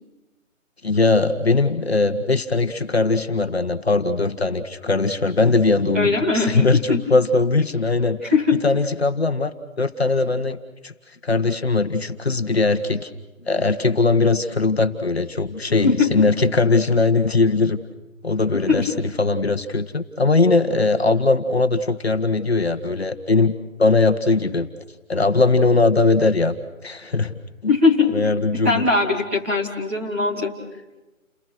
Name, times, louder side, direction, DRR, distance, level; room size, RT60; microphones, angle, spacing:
voice 1, 0.8-8.3 8.6-10.6 10.8-10.9 11.2-13.1 13.4-17.8 18.2-23.5 23.8-24.7 25.1-26.6 26.8-27.3 27.6-27.7 28.1-28.9, left 3 dB, 50° left, 8 dB, 1.6 m, -20 dB
voice 2, 5.9-6.6 6.9-7.0 8.3-8.6 15.8-16.1 18.7-18.9 27.7-28.1 28.6-30.5, left 4 dB, 10° right, -4 dB, 1.9 m, -20 dB
30.0 x 22.0 x 6.2 m, 1.1 s
figure-of-eight pair, 175°, 41 cm